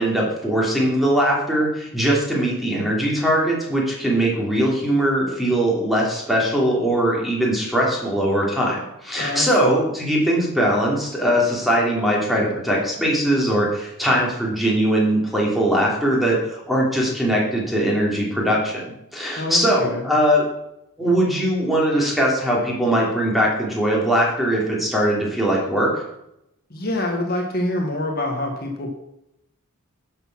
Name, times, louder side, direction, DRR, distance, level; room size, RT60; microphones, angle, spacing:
voice 1, 0.0-20.4 21.0-26.0, equal, ahead, -4 dB, 3.0 m, -21 dB
voice 2, 9.2-9.8 19.3-20.1 26.7-28.9, left 1 dB, 45° left, 2 dB, 1.5 m, -26 dB
12.0 x 6.7 x 6.1 m, 0.82 s
head